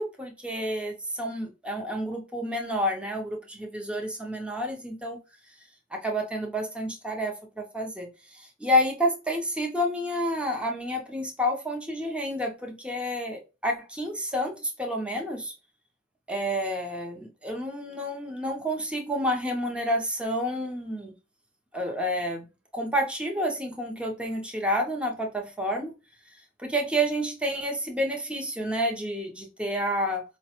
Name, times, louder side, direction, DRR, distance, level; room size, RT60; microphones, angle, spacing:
voice 1, 0.0-5.2 5.9-15.5 16.3-21.1 21.7-22.5 22.7-25.9 26.6-30.2, equal, 5° right, 0.5 m, -29 dB
4.7 x 2.1 x 2.8 m
head